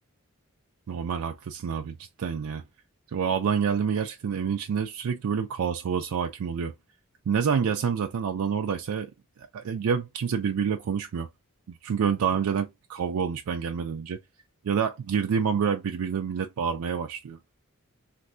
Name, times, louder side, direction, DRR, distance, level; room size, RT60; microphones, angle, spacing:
voice 1, 0.9-2.6 3.1-6.7 7.3-9.1 9.5-11.3 11.7-14.2 14.6-17.4, right 7 dB, 80° right, 0.4 m, -28 dB
3.2 x 2.5 x 2.5 m
head